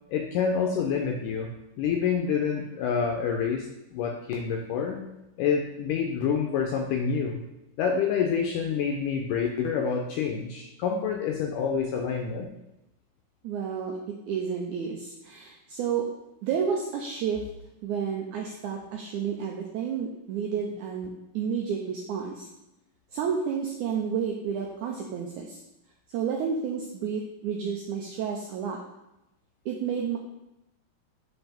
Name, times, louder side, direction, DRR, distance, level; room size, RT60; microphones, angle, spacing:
voice 1, 0.1-1.5 1.8-3.7 3.9-5.0 5.4-7.4 7.8-12.5, left 6 dB, 80° left, 2 dB, 1.9 m, -27 dB
voice 2, 13.4-16.1 16.4-17.4 17.8-22.5 23.1-25.6 26.1-28.8 29.7-30.2, right 7 dB, 90° right, 0 dB, 1.7 m, -31 dB
8.7 x 4.1 x 3.4 m, 0.90 s
omnidirectional pair, 4.2 m